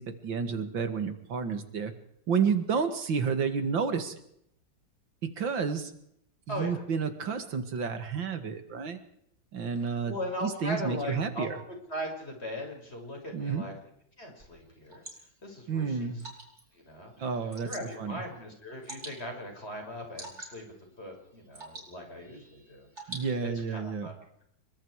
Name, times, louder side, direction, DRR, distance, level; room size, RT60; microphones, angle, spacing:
voice 1, 0.0-1.9 2.3-4.1 5.2-5.9 6.5-9.0 9.5-10.1 10.4-11.6 13.3-13.6 15.7-16.2 17.2-17.7 18.0-18.2 23.1-24.1, right 6 dB, 80° right, 9 dB, 2.7 m, -30 dB
voice 2, 6.5-6.8 9.8-11.5 11.9-13.7 14.2-15.0 15.4-16.1 16.7-17.3 17.6-20.6 21.0-24.1, left 1 dB, 30° left, 2 dB, 6.5 m, -39 dB
Water / Drip, 14.4-23.8, right 1 dB, 35° right, 5.5 m, -49 dB
26.5 x 23.5 x 4.9 m, 0.72 s
omnidirectional pair, 2.0 m